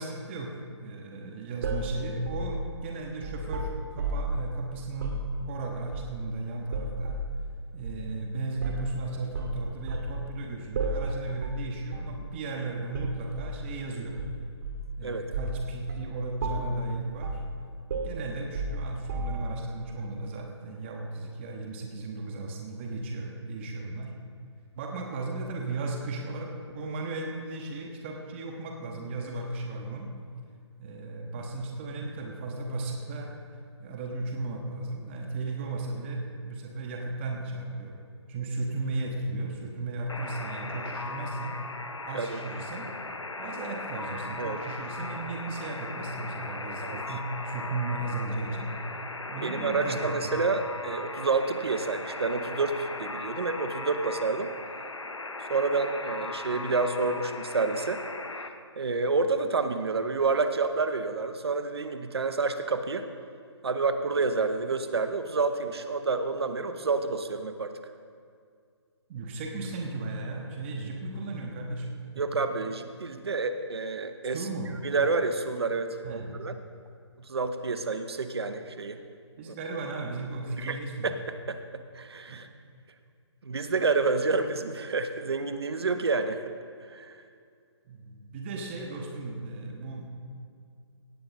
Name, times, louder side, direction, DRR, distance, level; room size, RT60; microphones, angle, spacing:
voice 1, 0.0-5.2 5.5-7.2 7.7-14.2 15.0-17.4 17.9-24.1 24.7-30.1 30.8-33.3 33.8-38.0 38.3-41.6 42.0-42.9 43.4-48.7 49.3-50.4 69.1-71.9 72.2-72.3 74.3-74.7 76.0-76.4 79.4-81.1 82.3-82.4 87.9-90.1, right 2 dB, 25° right, 1 dB, 1.0 m, -35 dB
sound 1, 1.6-4.4 4.9-5.3 5.9-6.3 6.7-7.3 7.8-8.0 8.6-8.9 9.3-10.1 10.7-11.1 11.4-11.6 11.9-12.2 12.9-13.6 14.2-14.9 15.3-15.6 15.9-16.1 16.4-16.8 17.2-17.5 17.9-19.6, right 2 dB, 40° right, 1.3 m, -33 dB
Alarm, 40.1-58.5, left 2 dB, 80° left, 0.8 m, -38 dB
voice 2, 49.4-54.5 55.5-58.0 58.8-63.0 63.6-67.8 72.2-74.4 74.8-76.5 77.3-79.0 79.5-79.6 80.6-80.8 81.0-81.2 81.5-82.5 83.4-86.5 86.9-87.2, right 4 dB, 60° right, 8 dB, 0.8 m, -29 dB
17.0 x 7.8 x 4.0 m, 2.2 s
figure-of-eight pair, 140°, 15 cm